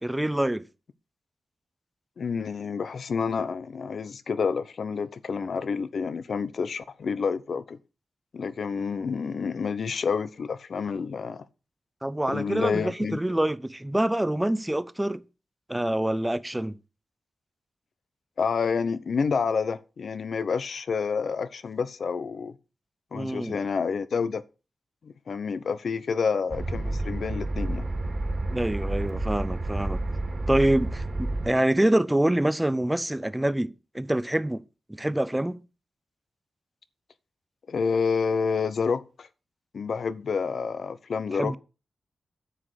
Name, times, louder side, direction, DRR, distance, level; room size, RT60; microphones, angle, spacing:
voice 1, 0.0-0.6 12.0-15.2 15.7-16.8 23.1-23.6 28.5-30.0 30.5-34.6 34.9-35.6 41.4-41.6, right 1 dB, 10° right, 0.8 m, -26 dB
voice 2, 2.2-7.8 8.3-11.5 12.3-13.2 18.4-22.6 23.1-24.4 25.0-27.9 37.7-39.3 39.7-41.5, left 5 dB, 75° left, 0.8 m, -29 dB
sound 1, 26.5-31.5, right 2 dB, 45° right, 2.5 m, -30 dB
10.0 x 7.7 x 4.9 m
cardioid pair, 50°, 0 cm